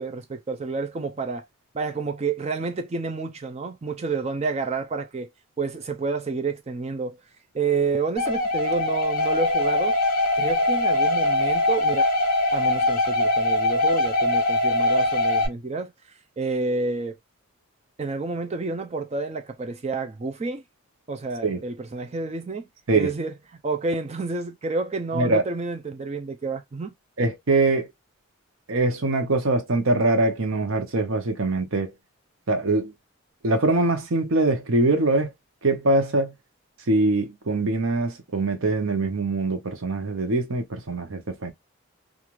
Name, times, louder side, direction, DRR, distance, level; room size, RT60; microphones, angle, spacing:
voice 1, 0.0-1.5 1.7-5.3 5.6-7.2 7.5-10.0 10.3-12.1 12.5-15.9 16.4-17.2 18.0-20.6 21.1-22.7 22.9-23.4 23.6-26.9, right 4 dB, 30° right, 0.4 m, -29 dB
sound 1, 8.2-15.5, left 1 dB, 40° left, 0.9 m, -22 dB
voice 2, 27.2-27.9 28.7-31.9 32.5-32.9 33.4-35.3 35.6-36.3 36.9-41.5, right 2 dB, 70° right, 0.8 m, -23 dB
3.0 x 2.5 x 2.4 m
head